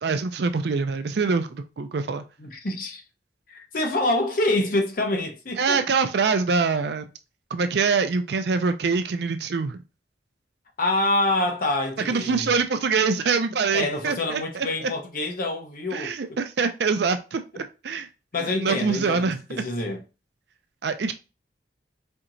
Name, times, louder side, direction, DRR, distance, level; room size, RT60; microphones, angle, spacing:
voice 1, 0.0-2.2 5.6-7.1 7.5-9.8 12.1-14.9 15.9-18.1 18.4-19.6 20.8-21.1, right 4 dB, 65° right, 0.4 m, -24 dB
voice 2, 2.4-3.0 3.5-5.8 10.8-12.5 13.7-16.4 17.5-17.6 18.3-20.0, left 2 dB, 50° left, 0.8 m, -26 dB
4.4 x 2.8 x 2.6 m
head